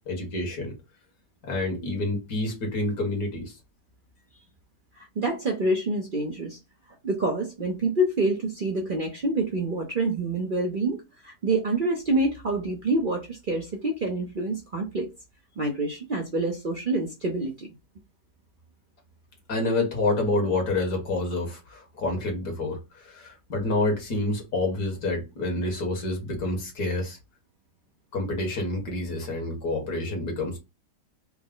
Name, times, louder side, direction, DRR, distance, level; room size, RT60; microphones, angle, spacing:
voice 1, 0.1-0.7 1.5-3.6 19.5-27.2 28.1-30.6, left 2 dB, 65° left, 1.8 m, -28 dB
voice 2, 5.0-6.6 7.0-15.1 15.6-17.7, right 2 dB, 60° right, 0.5 m, -27 dB
4.6 x 2.0 x 3.7 m
omnidirectional pair, 1.8 m